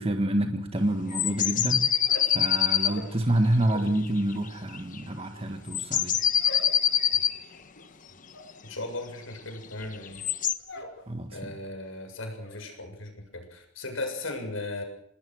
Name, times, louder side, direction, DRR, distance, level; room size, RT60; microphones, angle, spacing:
voice 1, 0.0-1.9 2.3-6.2 11.1-11.5, right 1 dB, 30° right, 5 dB, 1.7 m, -27 dB
sound 1, 1.1-3.0 4.1-4.5 4.7-5.0 5.7-7.4 9.8-10.5, left 9 dB, 40° left, 1.2 m, -24 dB
sound 2, 1.9-4.0 4.3-11.0 11.3-11.8 12.1-12.6, left 2 dB, 65° left, 5.3 m, -45 dB
voice 2, 8.6-10.2 11.3-14.8, left 2 dB, 85° left, 5 dB, 7.3 m, -37 dB
28.0 x 20.0 x 6.4 m, 0.71 s
head